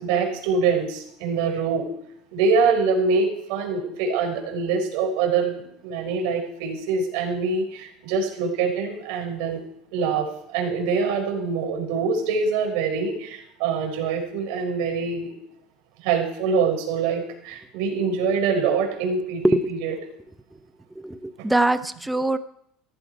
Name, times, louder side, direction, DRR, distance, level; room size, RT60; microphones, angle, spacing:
voice 1, 0.0-1.9 2.3-9.6 9.9-15.3 16.0-19.9, right 5 dB, 70° right, 2 dB, 5.1 m, -24 dB
voice 2, 21.0-22.4, right 2 dB, 5° right, 11 dB, 0.8 m, -22 dB
16.0 x 14.5 x 4.7 m, 0.73 s
cardioid pair, 145°, 0 cm